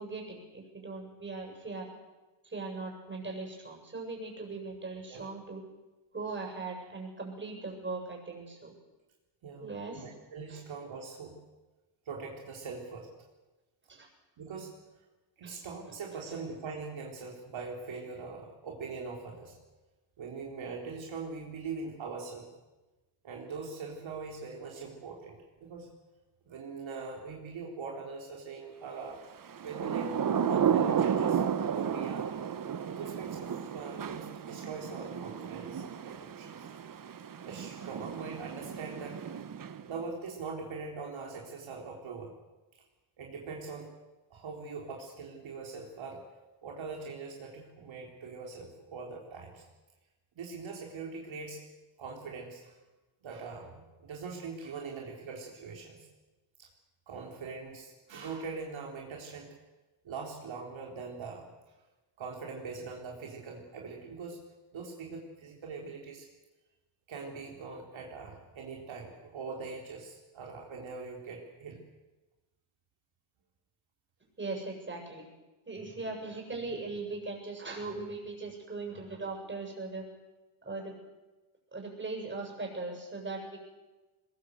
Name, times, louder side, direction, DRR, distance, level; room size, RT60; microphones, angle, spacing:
voice 1, 0.0-1.9 2.4-5.6 6.1-8.7 9.6-10.1 10.5-10.6 13.9-14.1 15.4-15.5 15.9-16.0 74.4-75.2 75.7-80.1 80.6-80.9 81.7-83.6, right 3 dB, 25° right, 1 dB, 7.4 m, -39 dB
voice 2, 9.4-11.4 12.1-13.1 14.4-14.8 15.4-19.6 20.2-22.5 23.2-25.9 26.5-29.2 29.6-30.2 30.5-32.3 32.9-36.7 37.4-39.2 39.9-42.3 43.2-43.9 44.3-46.2 46.6-49.6 50.4-51.6 52.0-52.8 53.2-56.1 56.6-56.7 57.1-59.5 60.0-61.5 62.2-64.4 64.7-66.3 67.1-71.8, right 4 dB, 65° right, 0 dB, 3.9 m, -42 dB
Thunder / Rain, 29.5-40.0, right 8 dB, 40° right, 1.2 m, -33 dB
21.5 x 21.0 x 8.0 m, 1.1 s
cardioid pair, 115°, 49 cm